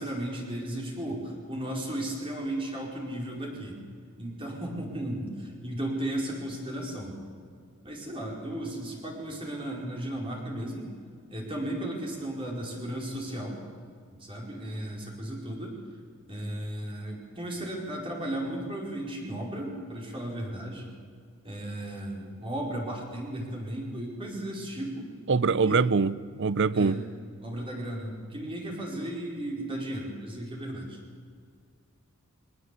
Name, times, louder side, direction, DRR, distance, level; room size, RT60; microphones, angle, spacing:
voice 1, 0.0-3.8 4.2-7.2 7.8-10.9 11.3-13.6 14.1-15.8 16.3-20.9 21.4-25.1 25.6-25.8 26.7-27.0 27.4-31.0, right 1 dB, 25° right, 5.0 m, -35 dB
voice 2, 25.3-27.0, right 4 dB, 60° right, 0.6 m, -24 dB
23.0 x 19.0 x 8.4 m
head